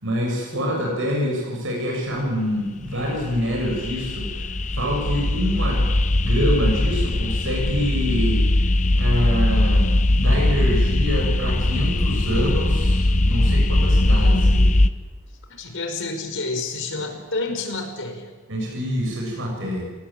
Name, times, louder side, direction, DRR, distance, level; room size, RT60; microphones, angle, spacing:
voice 1, 0.0-8.5 9.0-9.9 10.2-14.7 17.0-17.1 18.5-19.8, equal, 60° right, -1 dB, 6.9 m, -26 dB
voice 2, 0.5-0.9 15.5-18.3, left 3 dB, 60° left, 5 dB, 5.2 m, -29 dB
sound 1, 2.9-14.9, left 1 dB, 35° left, 1.0 m, -20 dB
27.5 x 19.0 x 8.9 m, 1.3 s
head